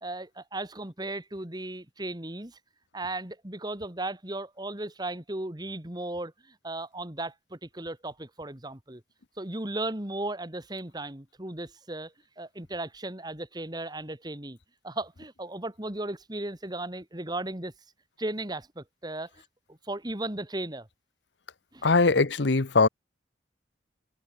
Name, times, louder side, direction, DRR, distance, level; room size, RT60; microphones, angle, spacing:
voice 1, 0.0-2.6 2.9-9.0 9.4-14.6 14.8-17.7 18.2-19.3 19.7-20.9 21.7-21.9, right 2 dB, 25° right, 2.2 m, -36 dB
voice 2, 21.8-22.9, left 3 dB, 80° left, 1.0 m, -21 dB
head